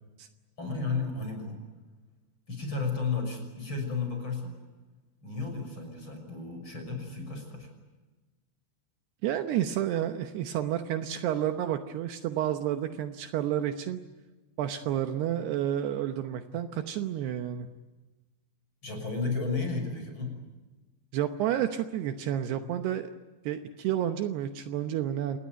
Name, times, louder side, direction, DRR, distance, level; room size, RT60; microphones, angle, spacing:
voice 1, 0.6-1.6 2.5-4.6 5.2-7.7 18.8-20.3, left 4 dB, 25° left, 4 dB, 6.7 m, -33 dB
voice 2, 9.2-14.0 14.6-17.7 21.1-23.1 23.4-25.4, right 11 dB, 75° right, 7 dB, 2.9 m, -30 dB
28.0 x 19.0 x 9.3 m, 1.2 s
omnidirectional pair, 5.1 m